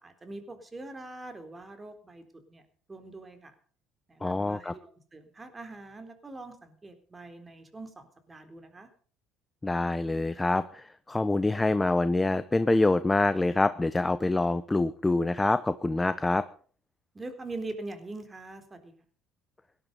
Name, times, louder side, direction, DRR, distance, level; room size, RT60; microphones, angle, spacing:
voice 1, 0.0-2.6 2.9-3.5 4.1-8.9 17.1-18.9, right 2 dB, 20° right, 7 dB, 3.9 m, -43 dB
voice 2, 4.2-4.7 9.6-16.5, left 2 dB, 15° left, 13 dB, 0.8 m, -26 dB
17.5 x 12.0 x 5.4 m, 0.43 s
supercardioid pair, 75°, 0 cm